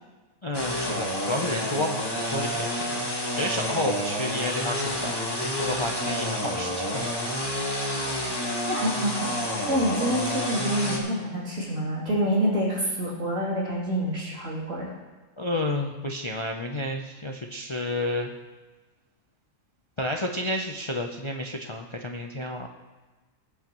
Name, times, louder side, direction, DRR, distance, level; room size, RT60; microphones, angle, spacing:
voice 1, 0.4-3.0 3.4-5.2 5.4-7.1 15.4-18.3 20.0-22.7, left 1 dB, 40° left, 2 dB, 0.4 m, -30 dB
sound 1, 0.5-11.0, equal, 20° left, 1.5 m, -29 dB
voice 2, 8.7-9.4 9.7-14.9, equal, 65° right, -5 dB, 3.2 m, -27 dB
17.0 x 8.1 x 3.0 m, 1.3 s
omnidirectional pair, 1.4 m